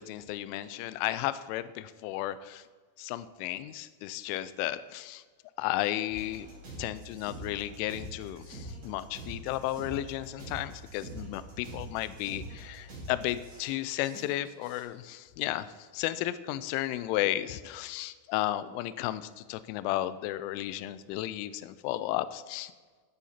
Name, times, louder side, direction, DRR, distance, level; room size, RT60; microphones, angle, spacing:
voice 1, 0.0-2.6 3.0-5.2 5.6-6.5 6.8-22.7, left 14 dB, 85° left, 14 dB, 3.1 m, -33 dB
sound 1, 6.1-14.8, right 1 dB, 45° right, 6.3 m, -44 dB
15.5 x 10.0 x 4.3 m, 1.4 s
omnidirectional pair, 5.5 m